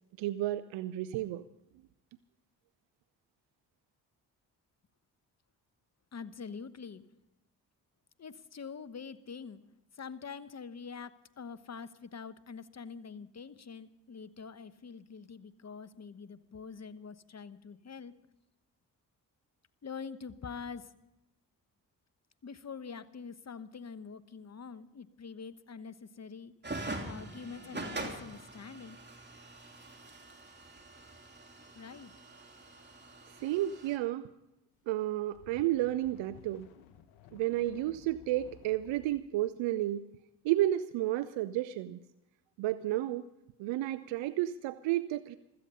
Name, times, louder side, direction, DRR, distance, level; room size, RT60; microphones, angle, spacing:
voice 1, 0.2-1.4 33.4-34.3 34.9-36.7 37.3-40.1 40.4-42.0 42.6-43.3 43.6-45.4, right 14 dB, 75° right, 13 dB, 0.7 m, -32 dB
voice 2, 6.1-7.0 8.2-9.6 9.9-18.1 19.8-20.9 22.4-26.5 27.0-29.0 31.7-32.1, left 5 dB, 35° left, 14 dB, 1.1 m, -45 dB
sound 1, 26.6-34.0, right 2 dB, 20° right, 3.0 m, -44 dB
sound 2, 35.0-39.3, left 10 dB, 85° left, 1.0 m, -56 dB
16.0 x 13.5 x 5.6 m, 0.91 s
hypercardioid pair, 40°, 46 cm